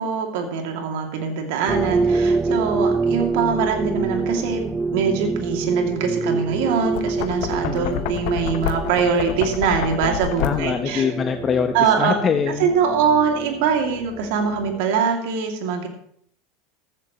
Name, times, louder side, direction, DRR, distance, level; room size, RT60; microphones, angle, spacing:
voice 1, 0.0-11.1 11.7-12.2 12.6-15.9, right 6 dB, 65° right, 3 dB, 2.7 m, -23 dB
sound 1, 1.7-14.8, right 3 dB, 15° right, 0.7 m, -26 dB
Knock, 6.8-10.9, left 12 dB, 60° left, 1.0 m, -29 dB
voice 2, 7.6-8.1 10.4-12.7, left 7 dB, 35° left, 7 dB, 1.0 m, -24 dB
14.5 x 14.0 x 3.2 m, 0.67 s
hypercardioid pair, 80°, 0 cm